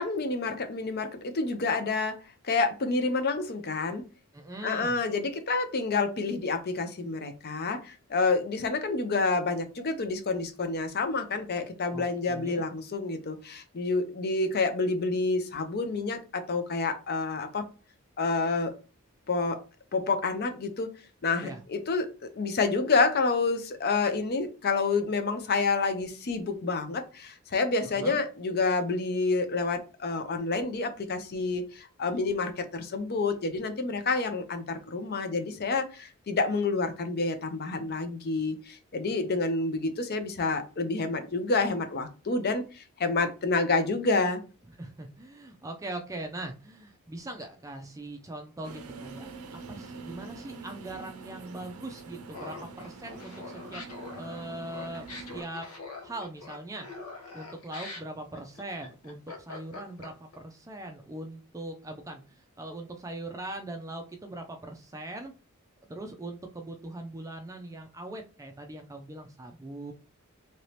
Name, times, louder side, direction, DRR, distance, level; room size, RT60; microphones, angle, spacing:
voice 1, 0.0-2.2 2.4-4.0 4.6-17.6 18.2-18.7 19.3-19.6 19.9-20.9 21.2-22.1 22.3-44.4, left 3 dB, 45° left, 8 dB, 0.6 m, -28 dB
voice 2, 4.3-5.0 11.9-12.6 21.4-21.6 27.8-28.2 44.8-49.3 49.7-53.8 54.2-55.7 56.0-56.9 57.3-65.3 65.9-69.9, right 1 dB, 15° right, 4 dB, 0.4 m, -41 dB
sound 1, 48.6-55.4, right 4 dB, 85° right, 0.6 m, -45 dB
Laughter, 52.3-60.4, left 3 dB, 90° left, 0.9 m, -43 dB
2.9 x 2.8 x 3.2 m, 0.33 s
head